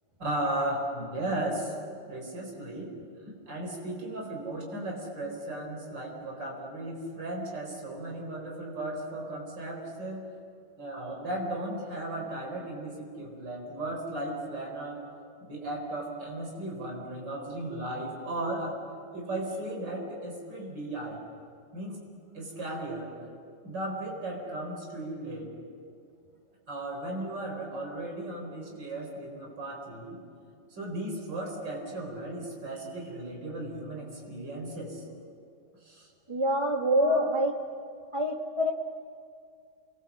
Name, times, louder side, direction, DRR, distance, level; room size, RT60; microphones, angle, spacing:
voice 1, 0.2-1.7 2.1-2.9 3.5-10.3 10.8-15.0 15.4-18.8 19.1-21.2 21.7-22.0 22.3-23.1 23.6-25.5 26.7-30.2 30.7-35.0 35.8-36.1 36.8-37.3, right 1 dB, 60° right, 1 dB, 5.1 m, -36 dB
voice 2, 36.3-37.5 38.1-38.7, equal, 15° right, 3 dB, 1.7 m, -26 dB
29.5 x 22.5 x 7.4 m, 2.3 s
omnidirectional pair, 2.2 m